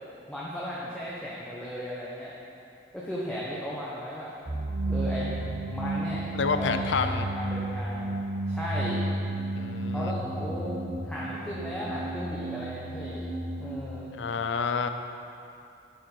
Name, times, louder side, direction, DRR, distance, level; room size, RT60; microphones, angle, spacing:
voice 1, 0.3-2.3 2.9-4.3 4.9-5.3 5.7-6.2 6.6-8.2 8.5-9.1 9.9-13.2 13.6-14.1, equal, 5° left, -7 dB, 0.9 m, -36 dB
sound 1, 4.5-13.8, right 1 dB, 55° right, 1.0 m, -32 dB
voice 2, 6.3-7.3 9.6-10.2 14.1-14.9, left 5 dB, 85° left, 8 dB, 0.5 m, -29 dB
8.9 x 5.2 x 5.5 m, 2.7 s
head